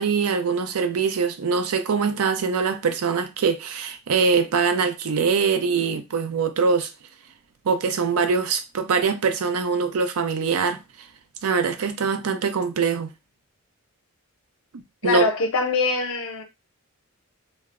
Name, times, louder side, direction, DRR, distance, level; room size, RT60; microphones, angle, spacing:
voice 1, 0.0-6.9 7.7-10.8 11.4-13.1 15.0-15.3, right 5 dB, 80° right, 0.4 m, -23 dB
voice 2, 15.0-16.4, left 3 dB, 60° left, 0.6 m, -23 dB
2.0 x 2.0 x 3.5 m
head